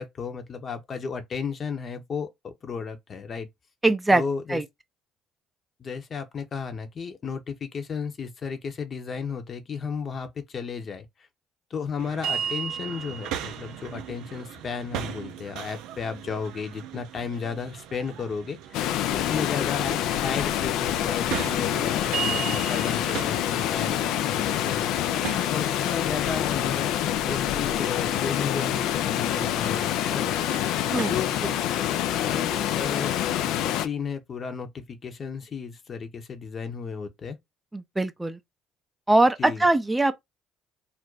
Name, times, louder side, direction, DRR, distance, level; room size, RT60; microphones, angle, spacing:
voice 1, 0.0-3.5 4.1-4.6 5.8-11.1 11.7-24.9 25.5-30.3 31.1-31.3 32.2-37.4 39.4-39.7, left 5 dB, 45° left, 0.8 m, -34 dB
voice 2, 3.8-4.2 4.5-4.6 30.8-31.1 31.4-31.5 37.7-38.4 39.1-40.1, right 2 dB, 15° right, 0.5 m, -22 dB
sound 1, 12.0-31.7, right 8 dB, 70° right, 0.4 m, -38 dB
Water, 18.7-33.9, left 11 dB, 70° left, 0.3 m, -26 dB
2.5 x 2.1 x 3.9 m
hypercardioid pair, 55°, 0 cm